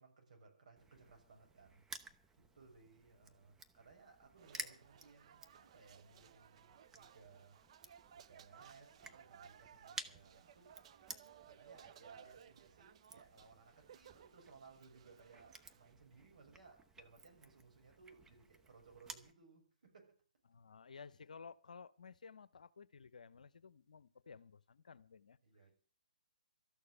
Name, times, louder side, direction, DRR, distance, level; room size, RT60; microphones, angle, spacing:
voice 1, 0.0-1.8 2.4-7.6 8.1-10.8 11.4-20.1 25.4-25.7, right 4 dB, 65° right, 6.3 m, -62 dB
Crushing, 0.8-19.3, right 4 dB, 10° right, 0.8 m, -55 dB
sound 1, 4.4-15.9, right 8 dB, 45° right, 0.7 m, -61 dB
voice 2, 20.5-25.7, left 5 dB, 70° left, 0.8 m, -56 dB
13.5 x 6.7 x 9.9 m
figure-of-eight pair, 135°, 4 cm